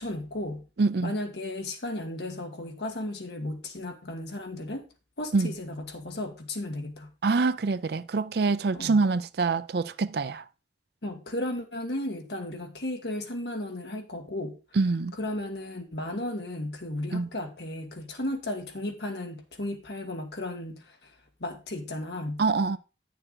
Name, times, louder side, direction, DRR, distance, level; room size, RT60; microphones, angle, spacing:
voice 1, 0.0-0.7 1.0-4.8 5.2-7.1 8.7-9.0 11.0-14.6 15.2-21.1 21.4-22.4, left 1 dB, 70° left, 1.6 m, -34 dB
voice 2, 0.8-1.1 5.3-5.5 7.2-10.4 14.8-15.2 17.1-17.3 22.4-22.8, right 4 dB, 60° right, 0.5 m, -25 dB
8.8 x 6.6 x 3.9 m
head